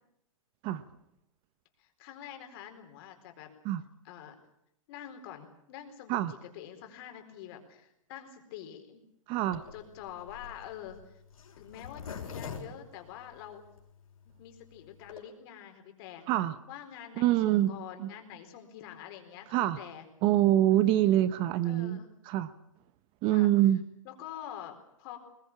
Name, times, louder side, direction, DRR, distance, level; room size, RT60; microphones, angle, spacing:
voice 1, 1.8-3.5 4.0-4.4 4.9-9.0 9.7-11.2 11.6-13.6 14.4-16.3 16.7-20.1 21.6-22.1 23.3-23.5 24.0-25.2, left 10 dB, 45° left, 5 dB, 4.3 m, -46 dB
voice 2, 9.3-9.6 16.3-16.5 17.2-18.1 19.5-19.8 20.2-22.0 22.3-22.5 23.2-23.8, right 13 dB, 30° right, 14 dB, 0.8 m, -25 dB
Zipper (clothing), 9.5-13.8 14.3-14.4 14.5-14.6 14.9-15.2, left 7 dB, 90° left, 5.4 m, -43 dB
21.0 x 20.5 x 8.6 m, 0.78 s
hypercardioid pair, 140°, 18 cm